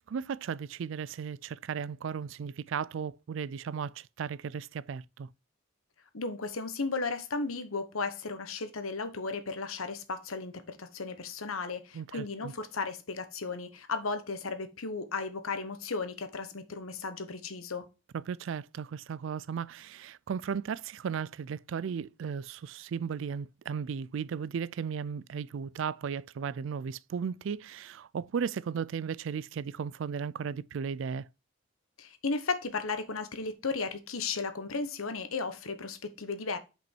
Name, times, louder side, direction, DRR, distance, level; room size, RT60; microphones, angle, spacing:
voice 1, 0.0-5.3 11.9-12.5 18.1-31.3, right 6 dB, 65° right, 0.3 m, -35 dB
voice 2, 6.1-17.9 32.0-36.6, left 4 dB, 90° left, 1.0 m, -35 dB
6.1 x 5.2 x 4.5 m
head